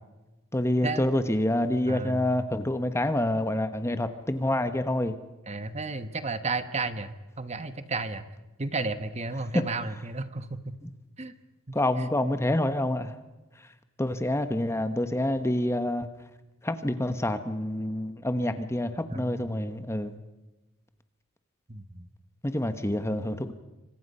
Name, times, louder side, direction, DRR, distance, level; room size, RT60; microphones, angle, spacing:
voice 1, 0.5-5.2 9.5-9.6 11.7-13.2 14.0-16.1 16.6-20.2 22.4-23.5, left 1 dB, 15° left, 10 dB, 1.1 m, -27 dB
voice 2, 1.9-2.3 5.5-8.3 8.6-10.8 11.2-11.3 11.7-12.1 19.1-19.7 21.7-22.1 23.1-23.3, right 3 dB, 30° right, 11 dB, 1.2 m, -33 dB
27.5 x 25.5 x 5.5 m, 1.1 s
head